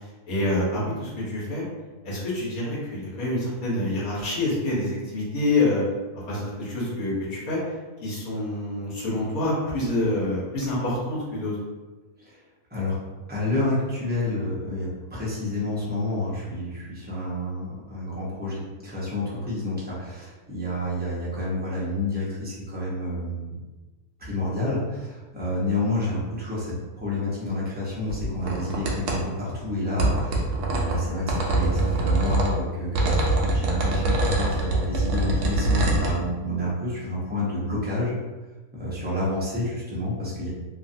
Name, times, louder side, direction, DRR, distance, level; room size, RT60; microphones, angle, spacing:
voice 1, 0.3-1.6 2.0-5.8 6.3-7.6 8.0-11.5, left 2 dB, 85° left, -5 dB, 1.4 m, -27 dB
voice 2, 13.3-23.6 24.2-38.2 38.8-40.5, left 1 dB, 10° right, -8 dB, 0.6 m, -29 dB
sound 1, 28.1-29.2 30.0-32.5 33.0-36.1, right 2 dB, 65° right, 0.9 m, -23 dB
2.9 x 2.5 x 2.6 m, 1.2 s
omnidirectional pair, 1.5 m